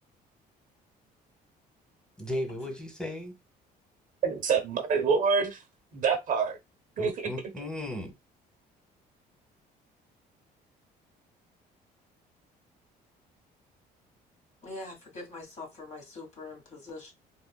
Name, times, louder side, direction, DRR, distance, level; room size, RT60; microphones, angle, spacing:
voice 1, 2.2-3.4 7.0-8.1, left 1 dB, 5° left, 1.0 m, -35 dB
voice 2, 4.2-5.6 5.9-6.6 7.0-7.3, right 5 dB, 50° right, 0.8 m, -26 dB
voice 3, 14.6-17.1, left 2 dB, 45° left, 1.5 m, -43 dB
3.6 x 2.2 x 2.2 m
cardioid pair, 110°, 17 cm